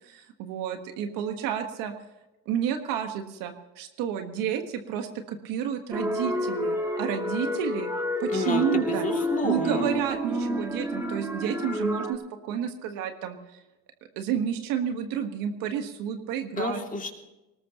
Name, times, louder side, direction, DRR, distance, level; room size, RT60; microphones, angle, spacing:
voice 1, 0.0-1.9 2.4-7.9 8.2-9.1 9.4-13.6 14.1-16.8, right 8 dB, 85° right, 6 dB, 1.4 m, -30 dB
sound 1, 5.9-12.1, equal, 10° right, 2.5 m, -29 dB
voice 2, 8.3-9.9 16.6-17.1, left 3 dB, 25° left, 2 dB, 2.5 m, -31 dB
20.5 x 19.0 x 2.9 m, 1.0 s
cardioid pair, 110°, 33 cm